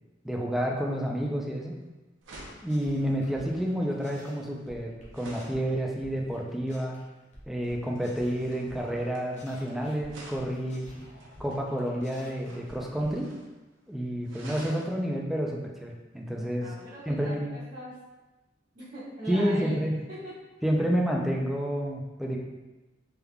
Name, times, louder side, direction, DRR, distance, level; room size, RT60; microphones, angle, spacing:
voice 1, 0.2-1.7 2.6-7.0 7.5-10.9 11.4-13.3 13.9-16.7 17.1-17.5 19.3-19.9 20.6-22.4, equal, ahead, -1 dB, 0.3 m, -29 dB
sound 1, 1.6-1.8 2.2-5.7 7.6-9.7 10.1-11.6 12.3-13.5 13.8-13.9 14.2-14.9 16.8-16.9, right 1 dB, 80° right, 0.7 m, -50 dB
sound 2, 2.2-4.4 4.7-7.0 7.3-9.0 9.3-13.2, equal, 40° left, 0.7 m, -50 dB
voice 2, 16.6-17.9 18.7-19.8 20.1-20.3, right 1 dB, 45° right, -13 dB, 1.1 m, -40 dB
3.4 x 3.4 x 2.2 m, 1.1 s
head